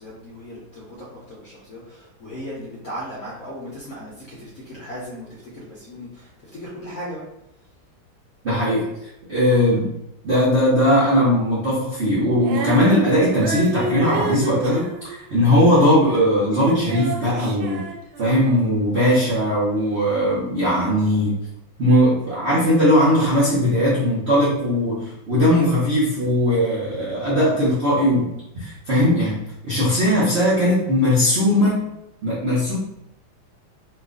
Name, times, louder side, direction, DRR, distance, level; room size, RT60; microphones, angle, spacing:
voice 1, 0.0-7.2, equal, 65° left, -6 dB, 0.8 m, -37 dB
voice 2, 8.4-8.9 9.3-9.9 10.2-17.8 18.2-21.4 21.8-28.3 28.5-31.9 32.2-32.7, equal, 60° right, -8 dB, 0.7 m, -19 dB
Female singing, 12.4-16.3 16.5-18.6, right 3 dB, 75° right, 1.2 m, -30 dB
3.0 x 2.5 x 3.6 m, 0.85 s
omnidirectional pair, 2.2 m